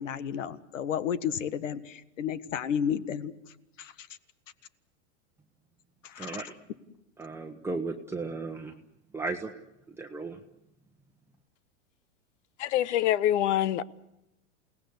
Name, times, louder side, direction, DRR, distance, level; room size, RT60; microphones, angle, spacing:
voice 1, 0.0-3.3 3.8-4.1 6.0-6.3, left 8 dB, 85° left, 1.5 m, -32 dB
voice 2, 6.1-6.5 7.2-8.7 9.1-9.5 9.9-10.4, right 3 dB, 5° right, 1.1 m, -35 dB
voice 3, 12.6-13.8, left 12 dB, 65° left, 1.1 m, -25 dB
28.5 x 18.5 x 8.1 m
supercardioid pair, 130°, 37 cm